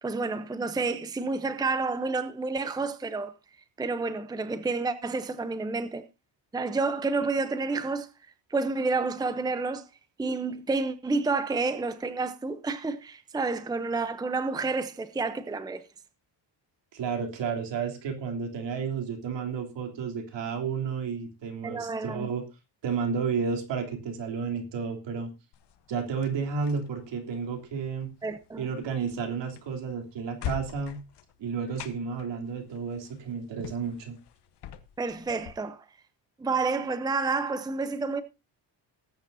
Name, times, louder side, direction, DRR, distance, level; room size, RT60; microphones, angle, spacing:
voice 1, 0.0-3.3 3.8-6.0 6.5-8.1 8.5-9.9 10.2-15.8 21.6-22.3 28.2-28.7 35.0-35.8 36.4-38.2, right 3 dB, 10° right, 0.7 m, -29 dB
voice 2, 16.9-22.4 22.8-25.3 25.9-28.1 28.6-31.0 31.4-34.1, right 6 dB, 70° right, 3.3 m, -32 dB
sound 1, 25.5-35.5, left 10 dB, 60° left, 1.2 m, -44 dB
19.0 x 9.1 x 2.7 m
cardioid pair, 135°, 45 cm